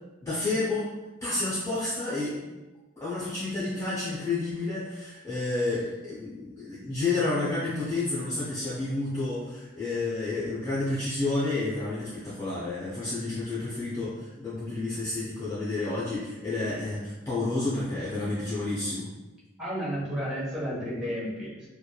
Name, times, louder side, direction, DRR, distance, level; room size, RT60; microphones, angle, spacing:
voice 1, 0.2-0.9 1.2-2.4 3.0-19.1, left 2 dB, 15° left, -10 dB, 0.5 m, -30 dB
voice 2, 19.6-21.7, equal, 5° right, -8 dB, 0.9 m, -32 dB
2.9 x 2.2 x 2.3 m, 1.1 s
head